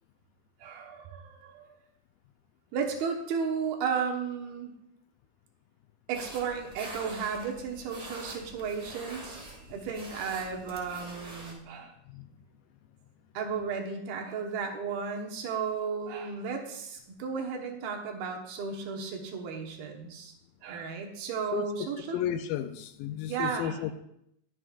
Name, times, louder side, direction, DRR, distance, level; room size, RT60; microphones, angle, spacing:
voice 1, 0.6-1.7 2.7-4.7 6.1-9.4 9.7-11.9 13.3-20.3 20.6-22.2 23.3-23.9, right 6 dB, 85° right, 2 dB, 3.2 m, -34 dB
sound 1, 6.1-11.5, right 1 dB, 60° right, 0.4 m, -45 dB
voice 2, 22.1-23.9, left 10 dB, 80° left, 9 dB, 2.2 m, -33 dB
20.5 x 7.7 x 2.4 m, 0.77 s
omnidirectional pair, 4.3 m